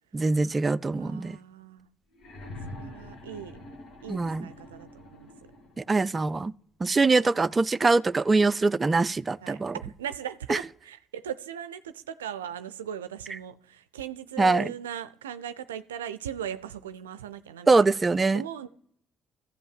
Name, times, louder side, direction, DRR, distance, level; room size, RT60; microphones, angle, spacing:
voice 1, 0.1-1.4 4.1-4.5 5.8-6.5 6.8-9.8 10.5-10.6 14.4-14.7 17.7-18.4, right 3 dB, 30° right, 0.4 m, -23 dB
voice 2, 0.9-1.9 2.7-3.6 4.0-5.3 9.4-17.9 18.3-18.7, right 9 dB, 85° right, 0.5 m, -38 dB
sound 1, 2.1-6.0 7.2-7.3, left 1 dB, 60° left, 2.0 m, -44 dB
14.0 x 5.4 x 7.5 m
hypercardioid pair, 50°, 0 cm